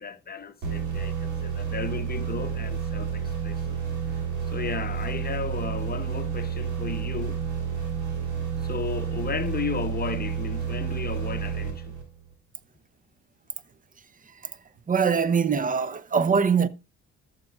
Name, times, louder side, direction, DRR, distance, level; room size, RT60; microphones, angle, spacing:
voice 1, 0.0-3.8 4.5-7.4 8.6-12.0, left 5 dB, 30° left, 0.7 m, -34 dB
sound 1, 0.6-12.3, right 7 dB, 70° right, 3.4 m, -30 dB
voice 2, 14.9-16.7, right 6 dB, 25° right, 0.6 m, -22 dB
13.5 x 6.6 x 2.3 m
cardioid pair, 90°, 30 cm